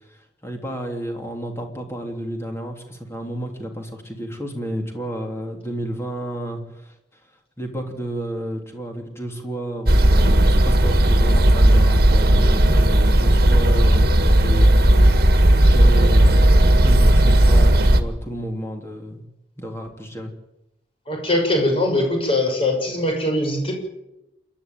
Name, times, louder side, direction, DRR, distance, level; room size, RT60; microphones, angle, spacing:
voice 1, 0.1-6.9 7.6-19.2 19.6-20.3, equal, 15° left, 3 dB, 3.3 m, -31 dB
sound 1, 9.9-18.0, right 1 dB, 60° right, 1.7 m, -14 dB
voice 2, 21.1-23.7, left 1 dB, 35° left, 2 dB, 6.5 m, -21 dB
28.0 x 11.5 x 9.1 m, 0.92 s
head